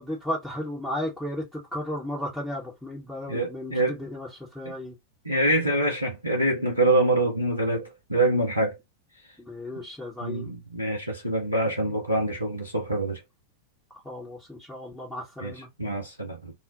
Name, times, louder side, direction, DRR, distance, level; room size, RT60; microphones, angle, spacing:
voice 1, 0.0-4.9 9.4-10.5 11.8-11.9 14.0-15.7, left 1 dB, ahead, 0.8 m, -34 dB
voice 2, 3.3-4.0 5.3-8.8 10.2-13.2 15.4-15.5 15.8-16.5, right 1 dB, 85° right, 0.6 m, -25 dB
2.4 x 2.1 x 2.6 m
figure-of-eight pair, 90°, 0 cm